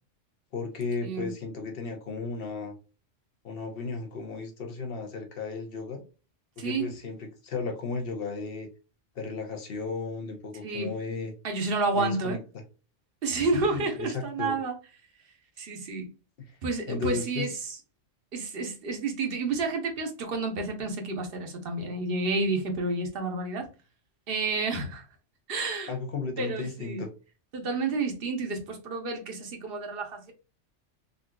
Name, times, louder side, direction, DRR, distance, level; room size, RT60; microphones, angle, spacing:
voice 1, 0.5-2.7 3.4-6.0 6.6-8.7 9.2-11.3 11.9-12.4 13.5-14.6 16.4-16.6 16.9-17.5 25.9-27.1, left 4 dB, 55° left, 1.0 m, -34 dB
voice 2, 6.6-6.9 10.6-10.9 11.4-12.4 13.2-14.8 15.6-16.1 16.6-17.8 18.3-23.7 24.3-25.1 25.5-25.9 26.4-27.0 27.5-30.3, right 3 dB, 55° right, 0.9 m, -30 dB
3.8 x 2.5 x 2.2 m
omnidirectional pair, 1.3 m